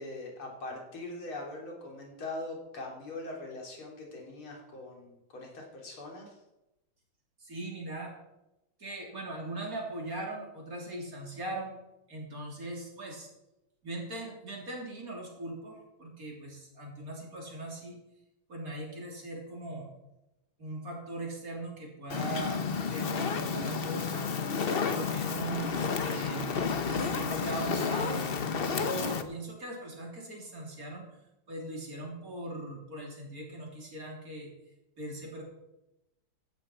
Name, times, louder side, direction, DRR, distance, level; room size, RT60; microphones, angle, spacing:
voice 1, 0.0-6.4, left 2 dB, 90° left, -1 dB, 4.0 m, -42 dB
voice 2, 7.4-8.1 8.8-11.8 12.1-13.3 13.8-18.0 18.5-19.9 20.6-24.3 24.7-28.3 28.7-31.1 31.5-34.5 35.0-35.4, right 1 dB, 45° right, -1 dB, 3.8 m, -39 dB
Fire, 22.1-29.2, left 5 dB, 50° left, 0.7 m, -31 dB
15.5 x 11.5 x 4.5 m, 0.94 s
omnidirectional pair, 2.3 m